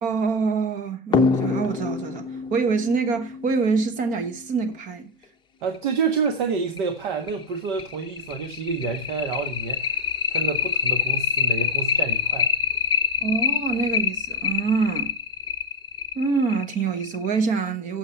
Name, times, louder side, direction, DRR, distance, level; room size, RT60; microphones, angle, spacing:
voice 1, 0.0-5.0 13.2-15.1 16.1-18.0, right 4 dB, 25° right, 1.1 m, -25 dB
sound 1, 1.1-4.3 5.7-5.8 6.3-6.4 6.8-6.9 7.3-17.3, left 7 dB, 15° left, 0.9 m, -25 dB
voice 2, 5.6-10.0 10.3-12.5, right 5 dB, 50° right, 1.6 m, -28 dB
8.6 x 7.3 x 4.5 m
figure-of-eight pair, 110°, 30 cm